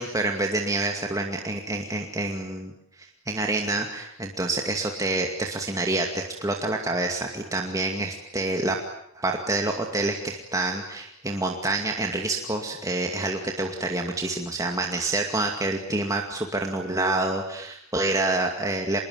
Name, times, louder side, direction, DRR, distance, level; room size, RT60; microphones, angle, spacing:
voice 1, 0.0-2.7 3.0-8.8 9.1-19.0, right 2 dB, 15° right, 2 dB, 2.3 m, -27 dB
25.5 x 22.0 x 9.5 m, 0.72 s
head